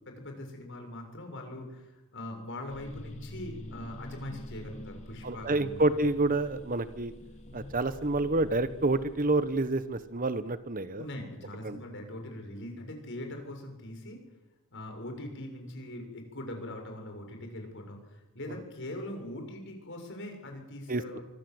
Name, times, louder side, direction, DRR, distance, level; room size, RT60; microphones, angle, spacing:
voice 1, 0.1-5.8 11.0-14.2 14.7-21.2, left 1 dB, 55° left, 4 dB, 7.3 m, -42 dB
sound 1, 2.7-10.8, left 1 dB, 30° left, 2.8 m, -46 dB
voice 2, 5.2-7.1 7.5-11.0 11.6-11.8 20.9-21.0, right 2 dB, 40° right, 13 dB, 1.2 m, -28 dB
25.0 x 25.0 x 8.1 m, 1.0 s
head